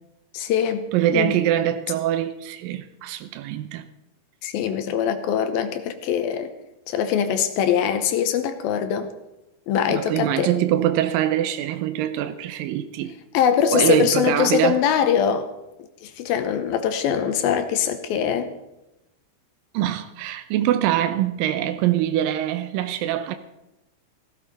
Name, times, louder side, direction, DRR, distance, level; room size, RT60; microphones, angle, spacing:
voice 1, 0.3-0.9 1.1-1.4 4.4-6.5 6.9-9.1 9.7-10.5 13.3-15.5 16.0-18.5, left 8 dB, 75° left, 2.5 m, -22 dB
voice 2, 0.9-3.8 9.9-13.1 13.7-14.8 19.7-23.3, right 12 dB, 85° right, 2.0 m, -23 dB
16.0 x 14.0 x 4.1 m
omnidirectional pair, 4.7 m